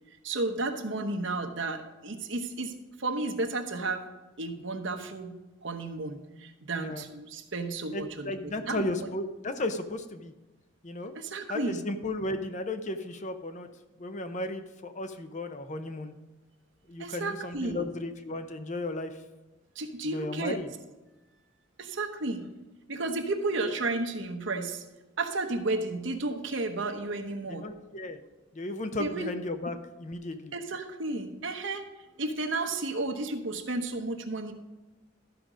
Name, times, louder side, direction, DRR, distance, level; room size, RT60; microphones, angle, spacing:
voice 1, 0.2-4.1 4.4-9.1 11.1-11.8 17.0-17.9 19.8-20.6 21.8-22.5 22.9-24.8 25.2-27.7 29.0-29.3 30.5-31.9 32.2-34.5, right 2 dB, 75° right, 6 dB, 1.0 m, -33 dB
voice 2, 6.7-7.0 7.9-10.3 10.8-11.1 11.5-13.7 14.0-16.1 16.9-19.2 20.0-20.7 27.5-28.2 28.5-30.5, left 2 dB, 40° left, 8 dB, 0.7 m, -35 dB
13.0 x 5.1 x 5.0 m, 1.1 s
head